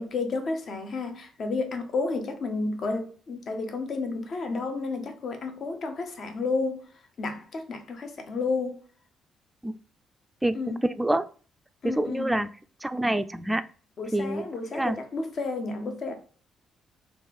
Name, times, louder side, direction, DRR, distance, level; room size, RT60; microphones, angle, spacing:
voice 1, 0.0-6.8 7.2-8.8 10.5-10.8 11.8-12.4 14.0-16.1, left 3 dB, 55° left, 0.7 m, -31 dB
voice 2, 11.8-12.5 12.8-13.6 14.1-14.5 14.7-15.0, right 1 dB, 10° right, 0.3 m, -26 dB
3.2 x 2.4 x 3.6 m
cardioid pair, 90°, 0 cm